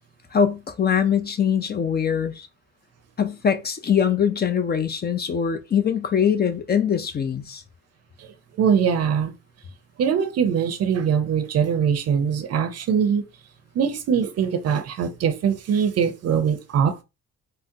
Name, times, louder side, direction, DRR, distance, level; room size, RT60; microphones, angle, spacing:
voice 1, 0.3-2.5 3.2-7.6, left 7 dB, 35° left, 0.5 m, -22 dB
voice 2, 8.6-9.3 10.0-13.2 13.7-17.0, right 7 dB, 55° right, 0.6 m, -22 dB
3.7 x 2.0 x 2.7 m
cardioid pair, 90°, 30 cm